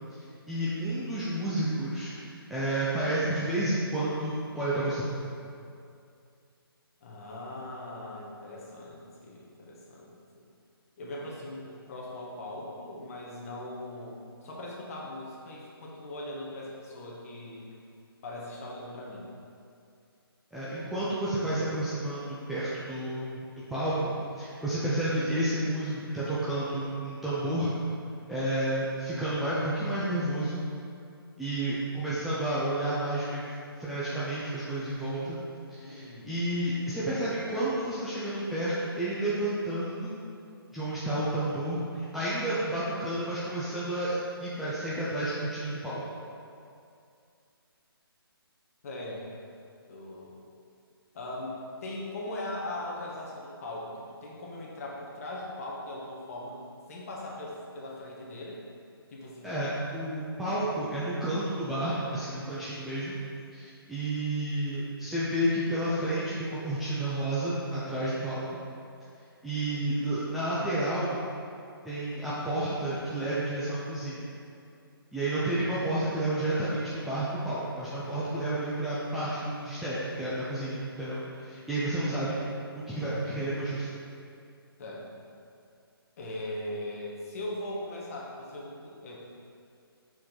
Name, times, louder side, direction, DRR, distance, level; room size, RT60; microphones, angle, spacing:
voice 1, 0.5-5.1 20.5-23.4 23.7-27.7 28.3-30.6 31.4-33.4 33.8-35.4 35.7-40.2 40.7-46.0 59.4-63.2 63.5-68.4 69.4-71.2 71.8-74.3 75.1-82.4 82.9-83.9, right 1 dB, ahead, -11 dB, 0.4 m, -31 dB
voice 2, 7.0-10.5 11.0-17.7 18.2-19.3 35.8-36.4 48.8-49.3 49.9-50.3 51.1-56.6 56.9-58.6 59.1-59.7 69.7-70.1 84.8-85.2 86.2-89.3, left 1 dB, 35° left, -3 dB, 1.2 m, -40 dB
6.2 x 4.5 x 3.8 m, 2.4 s
figure-of-eight pair, 145°, 13 cm